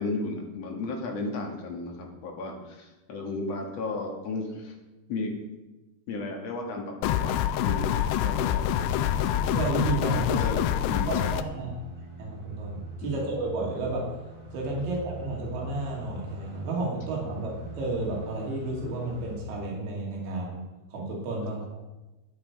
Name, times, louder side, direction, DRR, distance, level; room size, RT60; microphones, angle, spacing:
voice 1, 0.0-4.7 5.1-5.3 6.1-8.0 8.2-8.6 10.4-10.6 10.8-11.4 13.1-13.2 21.4-21.5, left 2 dB, 55° left, 1 dB, 2.0 m, -34 dB
sound 1, 7.0-11.4, left 11 dB, 85° left, 2.4 m, -26 dB
sound 2, 8.4-19.4, right 3 dB, 65° right, 6.8 m, -42 dB
voice 2, 9.5-10.4 11.1-11.7 12.2-14.0 14.5-20.6 20.9-21.6, right 2 dB, 85° right, -2 dB, 4.4 m, -32 dB
11.5 x 9.3 x 4.7 m, 1.1 s
omnidirectional pair, 4.9 m